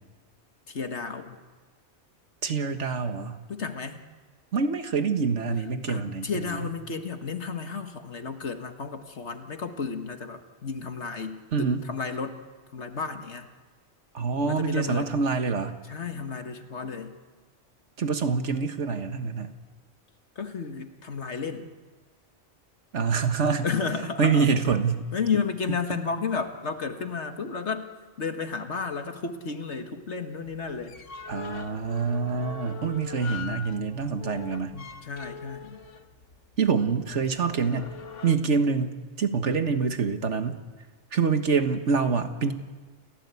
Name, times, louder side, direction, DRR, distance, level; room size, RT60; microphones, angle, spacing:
voice 1, 0.7-1.4 3.5-4.0 5.9-12.4 12.7-13.5 14.4-15.1 15.9-17.1 20.4-21.7 23.6-24.5 25.1-27.9 28.2-31.0 34.7-35.8, left 5 dB, 70° left, 6 dB, 1.8 m, -32 dB
voice 2, 2.4-3.4 4.5-6.6 11.5-11.8 14.1-15.8 18.0-19.5 22.9-23.7 24.2-25.1 31.3-34.7 36.6-37.9 38.2-40.6 41.1-42.5, right 5 dB, 75° right, 8 dB, 1.8 m, -26 dB
sound 1, 30.4-38.4, left 5 dB, 85° left, 1.5 m, -42 dB
29.5 x 15.5 x 8.3 m, 1.4 s
omnidirectional pair, 1.2 m